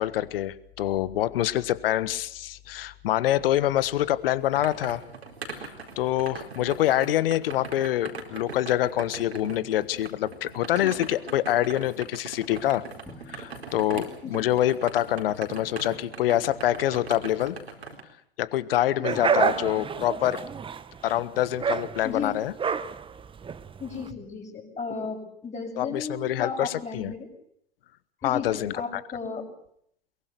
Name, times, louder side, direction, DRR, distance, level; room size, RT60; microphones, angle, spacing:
voice 1, 0.0-5.0 5.5-5.7 6.0-12.9 13.3-17.6 18.4-20.4 21.0-22.5 25.8-27.1 28.2-29.0, left 13 dB, 65° left, 17 dB, 1.4 m, -26 dB
sound 1, 4.0-18.0, right 4 dB, 85° right, 4.4 m, -41 dB
voice 2, 10.8-11.1 14.2-14.5 19.1-19.8 22.0-22.4 23.8-27.3 28.2-29.5, left 5 dB, 20° left, -1 dB, 6.5 m, -35 dB
Drum, 13.1-15.1, left 2 dB, 5° left, 4.6 m, -52 dB
sound 2, 19.0-24.1, right 6 dB, 15° right, 1.1 m, -29 dB
23.0 x 22.5 x 6.8 m, 0.67 s
hypercardioid pair, 95°, 31 cm